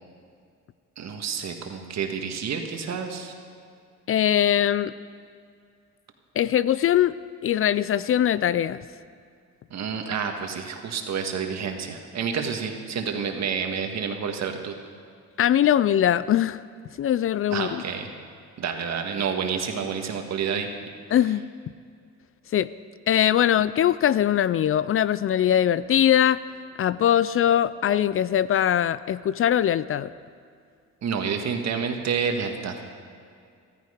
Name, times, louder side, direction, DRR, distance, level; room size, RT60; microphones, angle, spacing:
voice 1, 1.0-3.3 9.7-14.7 17.5-18.1 18.6-20.7 31.0-32.9, right 6 dB, 60° right, 4 dB, 1.7 m, -29 dB
voice 2, 4.1-4.9 6.4-7.1 7.4-8.8 15.4-16.6 17.0-17.8 21.1-21.4 22.5-22.7 23.1-26.4 26.8-30.1, left 10 dB, 45° left, 17 dB, 0.4 m, -21 dB
14.0 x 14.0 x 5.1 m, 2.3 s
cardioid pair, 90°, 30 cm